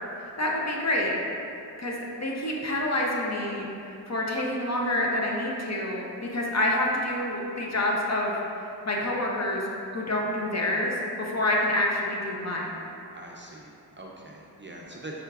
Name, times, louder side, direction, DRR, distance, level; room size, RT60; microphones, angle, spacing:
voice 1, 0.2-1.2 1.8-3.7 4.1-8.4 8.8-9.6 9.9-12.8, left 1 dB, 40° left, -2 dB, 0.6 m, -27 dB
voice 2, 13.1-15.2, right 2 dB, 30° right, -2 dB, 0.4 m, -43 dB
4.4 x 3.7 x 2.3 m, 2.7 s
wide cardioid pair, 40°, 41 cm